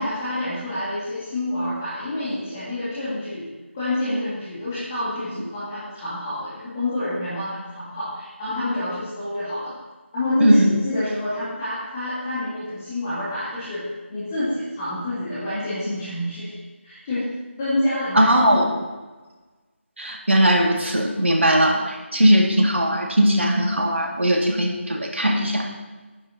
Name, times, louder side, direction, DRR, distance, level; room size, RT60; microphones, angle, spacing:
voice 1, 0.0-3.5 3.7-9.7 10.1-16.5 16.8-17.3 17.6-18.7, left 1 dB, 15° left, -13 dB, 2.1 m, -27 dB
voice 2, 18.2-18.6 20.0-25.7, equal, 65° right, 0 dB, 2.1 m, -19 dB
14.0 x 9.4 x 2.8 m, 1.3 s
figure-of-eight pair, 165°, 7 cm